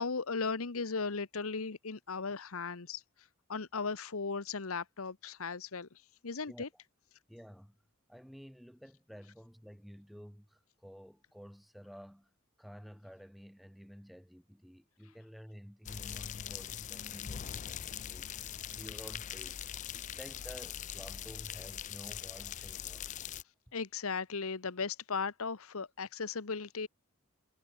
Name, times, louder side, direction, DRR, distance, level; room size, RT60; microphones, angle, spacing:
voice 1, 0.0-3.0 3.5-5.9 6.2-6.7 23.7-26.9, left 4 dB, 80° left, 1.1 m, -36 dB
voice 2, 7.3-7.7 8.1-12.3 12.6-19.6 19.9-23.1, equal, ahead, 2.1 m, -52 dB
sound 1, 15.9-23.4, left 9 dB, 35° left, 0.3 m, -42 dB
head